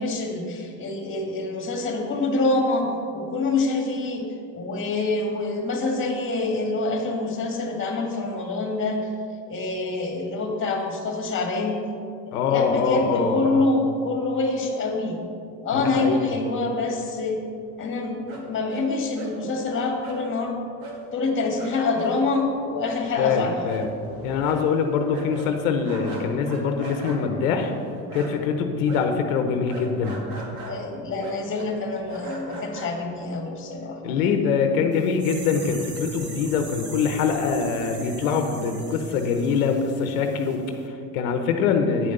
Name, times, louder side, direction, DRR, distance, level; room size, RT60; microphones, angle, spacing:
voice 1, 0.0-2.9 3.1-4.3 4.5-9.0 9.5-11.8 12.3-15.2 15.6-17.4 17.8-20.6 21.1-23.6 30.6-34.7, left 3 dB, 30° left, 2 dB, 1.9 m, -26 dB
voice 2, 12.3-13.6 15.7-16.2 23.2-23.9 24.2-27.7 28.1-30.2 34.0-42.1, left 5 dB, 90° left, 6 dB, 0.9 m, -24 dB
sound 1, 18.3-18.9 19.1-19.4 20.0-20.2 20.8-21.0 21.3-21.4 21.6-28.5 28.8-33.4, right 2 dB, 65° right, 2.1 m, -38 dB
sound 2, 34.9-40.6 40.8-40.9, right 2 dB, 25° right, 1.5 m, -41 dB
9.3 x 5.2 x 6.7 m, 2.6 s
supercardioid pair, 110°, 41 cm